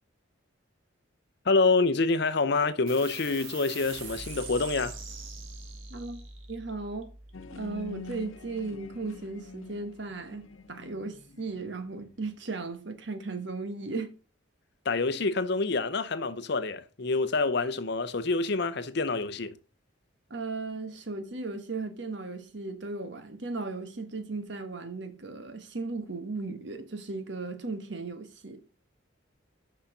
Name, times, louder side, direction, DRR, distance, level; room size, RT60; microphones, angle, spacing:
voice 1, 1.4-5.0 14.8-19.6, left 3 dB, 55° left, 0.7 m, -27 dB
sound 1, 2.9-9.8, right 4 dB, 80° right, 1.7 m, -44 dB
voice 2, 6.5-7.1 7.5-14.1 20.3-28.6, right 3 dB, 60° right, 1.2 m, -36 dB
sound 2, 7.3-12.2, left 4 dB, 90° left, 0.8 m, -46 dB
6.3 x 5.7 x 5.9 m
head